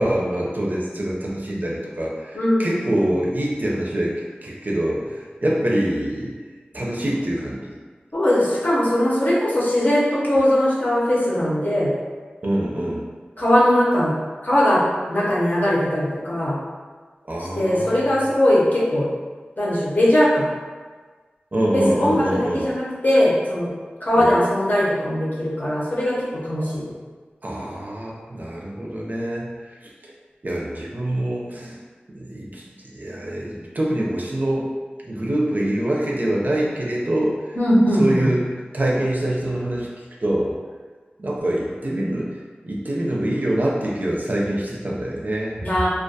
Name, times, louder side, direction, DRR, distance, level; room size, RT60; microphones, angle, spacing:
voice 1, 0.0-4.2 4.4-6.3 6.7-7.7 12.4-13.0 17.3-18.2 21.5-22.7 24.1-24.3 26.6-26.7 27.4-29.8 30.0-30.1 30.4-31.8 32.1-34.7 35.0-37.4 38.0-39.9 40.2-40.5 41.2-45.6, right 1 dB, 50° right, -3 dB, 0.4 m, -25 dB
voice 2, 8.1-11.9 13.4-14.1 14.4-14.8 15.1-16.6 17.6-19.1 19.6-20.4 21.7-23.7 24.0-26.9 37.6-38.3 45.6-45.9, left 1 dB, 50° left, -7 dB, 0.7 m, -20 dB
2.3 x 2.2 x 2.7 m, 1.5 s
wide cardioid pair, 60°, 4 cm